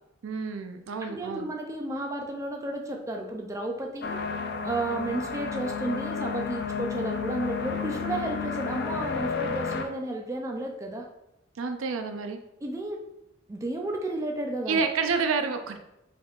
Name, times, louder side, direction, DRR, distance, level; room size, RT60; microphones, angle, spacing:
voice 1, 0.2-1.5 11.6-12.4 14.7-15.8, right 5 dB, 90° right, 6 dB, 0.5 m, -29 dB
voice 2, 1.0-4.2 4.6-11.1 12.6-13.0 13.5-14.8, right 2 dB, 15° right, 2 dB, 0.4 m, -32 dB
sound 1, 4.0-9.8, left 5 dB, 55° left, 0.4 m, -32 dB
5.0 x 3.5 x 2.4 m, 0.89 s
head